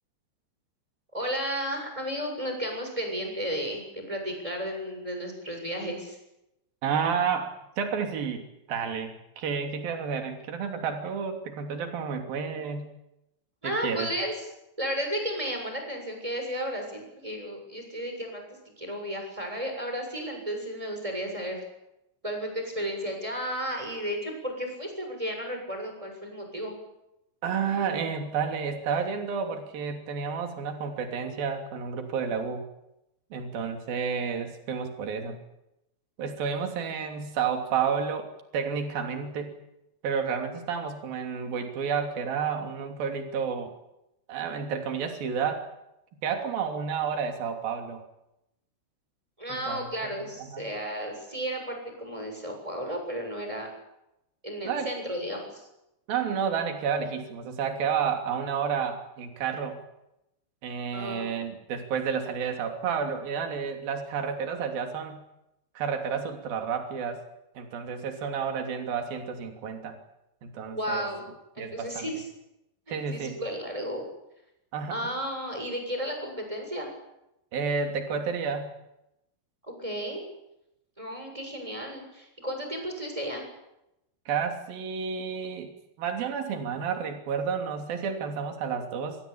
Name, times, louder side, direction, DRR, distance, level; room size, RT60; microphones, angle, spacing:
voice 1, 1.1-6.2 13.6-14.3 14.8-18.4 18.8-21.6 22.2-26.8 49.4-53.7 54.4-55.7 60.9-61.4 70.7-71.2 71.5-72.2 72.9-74.0 74.9-76.9 79.6-80.2 81.0-83.5, equal, 5° right, 3 dB, 6.8 m, -33 dB
voice 2, 6.8-8.4 8.7-12.9 13.6-14.1 27.4-32.6 33.3-35.4 36.2-38.3 38.5-39.5 40.0-43.7 44.3-45.7 46.2-48.0 49.5-50.7 54.6-54.9 56.1-59.8 60.6-65.2 65.8-67.2 67.5-70.0 70.4-71.0 71.6-72.1 72.9-73.4 74.7-75.0 77.5-78.7 84.3-85.7 86.0-89.2, right 6 dB, 50° right, 5 dB, 4.4 m, -31 dB
27.0 x 19.5 x 8.7 m, 0.88 s
omnidirectional pair, 5.7 m